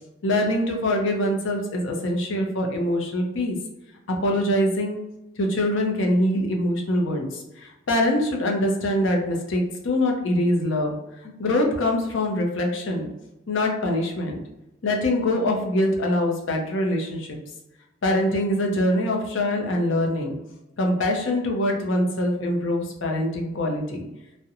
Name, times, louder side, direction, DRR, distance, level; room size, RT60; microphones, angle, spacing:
voice 1, 0.2-3.6 4.1-5.0 5.4-11.0 11.4-13.1 13.5-14.4 14.8-17.4 18.0-20.4 20.8-24.1, left 1 dB, 65° left, 2 dB, 0.5 m, -24 dB
2.8 x 2.1 x 2.4 m, 0.92 s
head